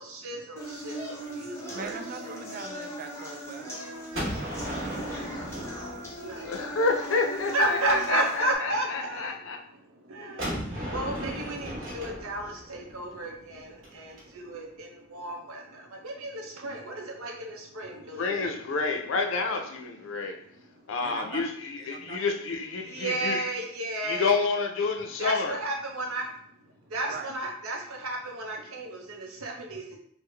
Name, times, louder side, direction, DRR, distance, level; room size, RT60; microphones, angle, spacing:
voice 1, 0.0-2.0 2.2-2.3 3.9-4.4 6.0-6.4 7.5-9.4 9.8-18.5 22.9-24.4 25.2-26.3 26.6-30.0, right 2 dB, 85° right, 1 dB, 0.7 m, -33 dB
sound 1, 0.6-8.5, equal, 15° left, 0.6 m, -39 dB
voice 2, 1.7-3.8 4.4-4.9 21.0-21.4 21.9-22.2 27.1-27.3, right 5 dB, 40° right, 5 dB, 0.3 m, -41 dB
Gunshot gunfire, 4.1-7.0 10.4-14.2, equal, 60° right, 1.2 m, -36 dB
voice 3, 6.4-9.6 18.2-20.4 20.9-23.5 24.0-25.6, left 4 dB, 60° left, 4 dB, 0.5 m, -29 dB
3.6 x 2.1 x 3.2 m, 0.67 s
head